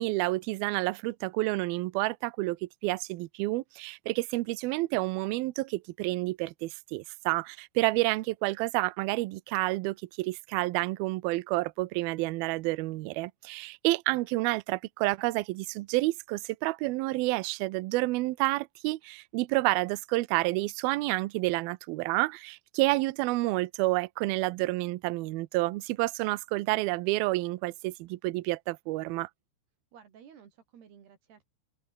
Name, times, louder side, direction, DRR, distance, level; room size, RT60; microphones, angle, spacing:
voice 1, 0.0-29.3, right 21 dB, 90° right, 2.1 m, -29 dB
voice 2, 29.9-31.5, right 8 dB, 60° right, 5.0 m, -54 dB
omnidirectional pair, 5.3 m